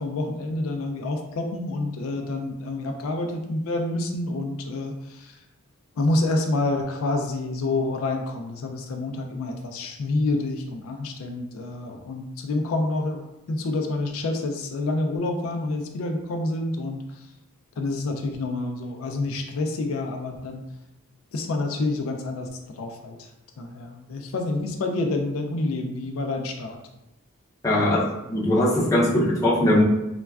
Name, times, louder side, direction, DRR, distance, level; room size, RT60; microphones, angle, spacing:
voice 1, 0.0-5.4 6.0-13.2 13.5-17.3 17.8-20.6 21.3-22.5 22.8-23.3 23.6-26.8 27.8-28.0, left 2 dB, 70° left, 3 dB, 0.3 m, -28 dB
voice 2, 27.6-29.8, left 1 dB, 15° left, -6 dB, 0.5 m, -20 dB
3.2 x 2.2 x 2.3 m, 0.91 s
head